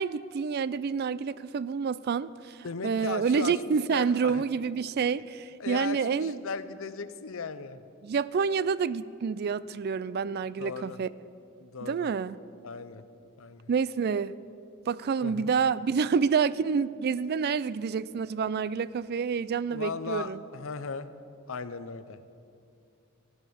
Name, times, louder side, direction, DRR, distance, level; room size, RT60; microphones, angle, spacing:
voice 1, 0.0-6.4 8.0-11.1 11.8-12.4 13.7-14.3 14.9-20.4, right 6 dB, 50° right, 18 dB, 0.3 m, -28 dB
voice 2, 2.6-4.4 5.2-5.3 5.6-7.8 10.6-11.0 11.6-12.1 12.6-13.0 13.4-13.7 15.2-15.5 19.7-22.2, left 5 dB, 65° left, 12 dB, 0.6 m, -37 dB
15.5 x 9.5 x 7.0 m, 2.6 s
head